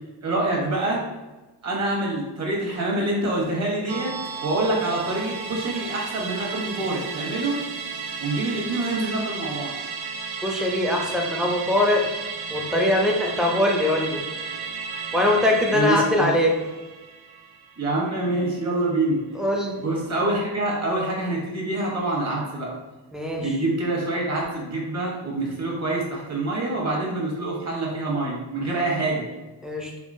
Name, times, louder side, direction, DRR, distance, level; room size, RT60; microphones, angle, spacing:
voice 1, 0.2-1.0 1.6-4.1 4.4-7.6 8.2-9.7 15.7-16.3 17.8-19.2 19.8-22.7 23.4-29.2, right 2 dB, 35° right, -3 dB, 1.2 m, -26 dB
Musical instrument, 3.9-18.6 18.9-19.0, right 5 dB, 55° right, 0.6 m, -34 dB
voice 2, 10.4-12.1 12.5-14.2 15.1-16.5 19.4-19.8 23.1-23.5 29.6-29.9, left 1 dB, ahead, 0 dB, 0.4 m, -22 dB
3.6 x 2.9 x 2.6 m, 1.2 s
cardioid pair, 120°, 44 cm